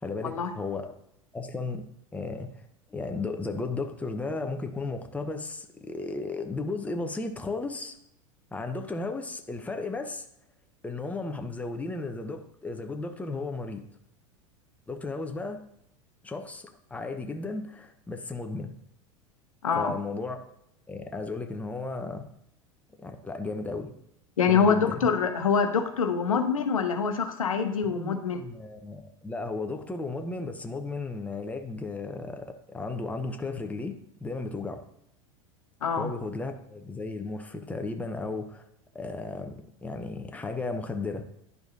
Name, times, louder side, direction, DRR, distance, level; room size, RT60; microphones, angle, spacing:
voice 1, 0.0-1.0 1.3-1.8 2.1-2.6 2.9-8.0 8.5-10.2 10.8-13.8 14.9-15.6 16.2-18.7 19.7-20.4 20.9-22.3 23.0-23.9 24.5-25.1 27.8-34.8 36.0-38.6 38.9-41.3, left 3 dB, 10° left, 5 dB, 0.8 m, -34 dB
voice 2, 19.6-19.9 24.4-28.4 35.8-36.1, left 6 dB, 85° left, 6 dB, 0.8 m, -25 dB
11.0 x 4.8 x 2.6 m, 0.77 s
hypercardioid pair, 85°, 17 cm